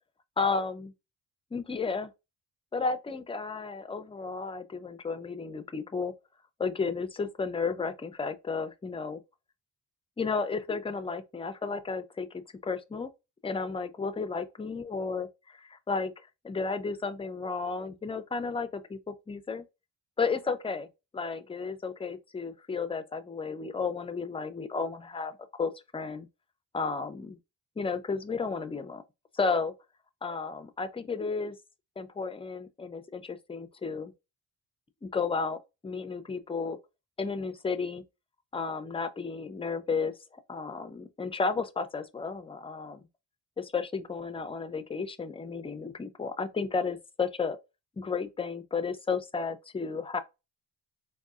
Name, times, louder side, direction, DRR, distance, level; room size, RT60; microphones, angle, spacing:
voice 1, 0.4-0.9 1.5-2.1 2.7-6.1 6.6-9.2 10.2-13.1 13.4-19.6 20.2-20.9 21.1-26.3 26.7-27.4 27.8-29.0 29.3-29.7 30.2-31.6 32.0-34.1 35.0-36.8 37.2-38.0 38.5-40.1 40.5-43.1 43.6-47.6 48.0-50.2, left 4 dB, 15° left, 0.3 m, -33 dB
3.8 x 2.3 x 2.3 m
cardioid pair, 90°, 46 cm